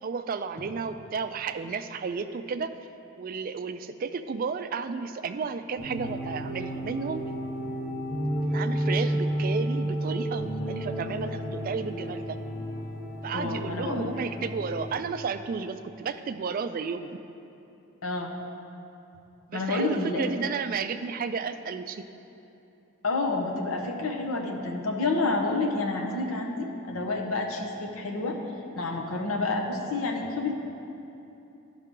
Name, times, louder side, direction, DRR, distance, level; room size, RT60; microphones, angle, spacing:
voice 1, 0.0-2.7 3.2-7.2 8.5-12.4 13.2-17.2 19.5-22.1, right 5 dB, 40° right, 9 dB, 0.3 m, -32 dB
sound 1, 5.8-14.9, equal, 55° left, 1.8 m, -31 dB
voice 2, 13.3-14.1 18.0-18.3 19.5-20.4 23.0-28.4 28.7-30.5, left 3 dB, 75° left, 1 dB, 0.9 m, -29 dB
12.0 x 5.6 x 3.7 m, 2.9 s
head